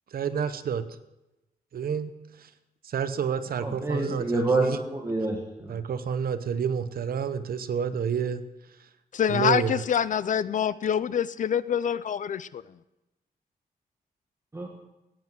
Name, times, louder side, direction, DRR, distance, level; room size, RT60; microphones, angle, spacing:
voice 1, 0.1-0.8 1.7-2.1 2.8-4.8 5.7-8.4 9.3-9.8, right 7 dB, 70° right, 12 dB, 0.8 m, -29 dB
voice 2, 3.6-5.8 14.5-14.7, right 2 dB, 15° right, 0 dB, 1.7 m, -28 dB
voice 3, 9.1-12.6, left 8 dB, 55° left, 16 dB, 0.5 m, -26 dB
15.0 x 9.6 x 6.1 m, 0.95 s
wide cardioid pair, 135°, 16 cm